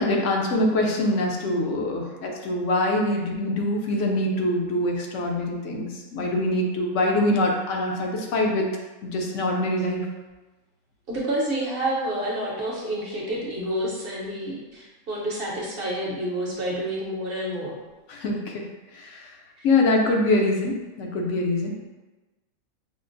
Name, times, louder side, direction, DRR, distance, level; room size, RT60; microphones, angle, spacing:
voice 1, 0.0-8.7 9.0-10.1 18.1-18.6 18.9-19.3 19.6-21.7, left 1 dB, 65° left, 0 dB, 0.9 m, -24 dB
voice 2, 11.1-17.8 19.6-19.7, right 1 dB, 50° right, -4 dB, 0.9 m, -29 dB
5.6 x 2.1 x 2.5 m, 1.2 s
omnidirectional pair, 1.5 m